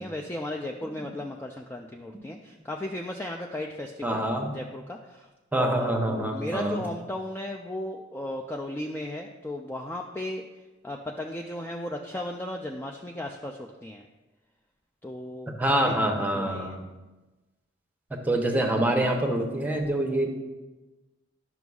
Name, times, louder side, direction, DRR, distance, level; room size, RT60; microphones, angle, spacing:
voice 1, 0.0-4.2 4.5-5.3 5.5-10.4 10.8-14.1 15.0-16.8, left 1 dB, 10° left, 0 dB, 0.3 m, -35 dB
voice 2, 4.0-4.5 5.5-6.8 15.6-16.8 18.3-20.3, right 1 dB, 10° right, 2 dB, 0.8 m, -25 dB
11.0 x 6.0 x 2.3 m, 1.1 s
head